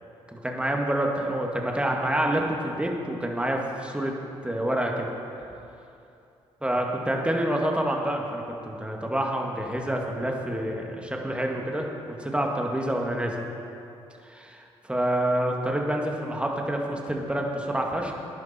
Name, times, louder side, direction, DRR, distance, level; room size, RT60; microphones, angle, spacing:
voice 1, 0.3-4.2 4.4-5.1 6.6-13.4 14.2-18.2, right 1 dB, 10° right, 0 dB, 2.1 m, -27 dB
14.5 x 10.5 x 4.5 m, 2.7 s
hypercardioid pair, 50°, 13 cm